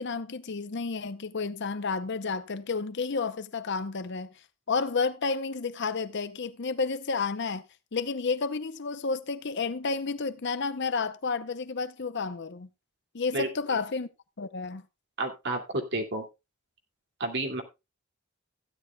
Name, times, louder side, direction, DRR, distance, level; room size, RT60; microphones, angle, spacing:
voice 1, 0.0-4.3 4.7-7.6 7.9-12.7 13.1-14.1 14.4-14.8, left 4 dB, 60° left, 0.7 m, -31 dB
voice 2, 15.2-16.2 17.2-17.6, right 2 dB, 55° right, 2.4 m, -30 dB
15.5 x 9.9 x 2.3 m
head